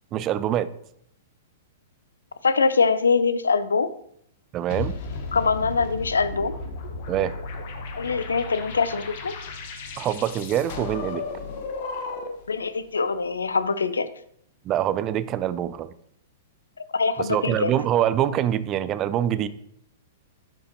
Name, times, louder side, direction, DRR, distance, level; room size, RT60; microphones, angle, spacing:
voice 1, 0.1-0.7 4.5-5.0 7.1-7.3 10.0-11.2 14.6-15.9 17.2-19.5, right 11 dB, 30° right, 14 dB, 0.4 m, -24 dB
voice 2, 2.4-3.9 5.3-6.5 8.0-9.3 12.5-14.1 16.9-17.7, left 5 dB, 80° left, 13 dB, 0.5 m, -23 dB
sound 1, 4.7-12.5, left 3 dB, 50° left, 1.1 m, -34 dB
10.0 x 4.5 x 2.9 m, 0.70 s
figure-of-eight pair, 105°, 0 cm